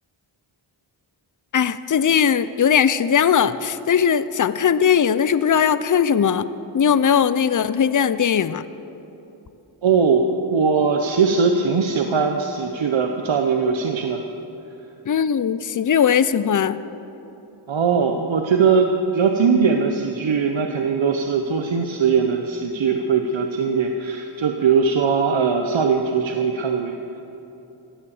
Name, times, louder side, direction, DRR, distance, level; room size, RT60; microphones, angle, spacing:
voice 1, 1.5-6.5 6.7-8.6 15.1-16.8, left 7 dB, 40° left, 14 dB, 0.6 m, -19 dB
voice 2, 9.8-14.2 17.7-27.0, right 5 dB, 70° right, 4 dB, 0.9 m, -20 dB
15.5 x 9.7 x 7.2 m, 3.0 s
wide cardioid pair, 55°, 48 cm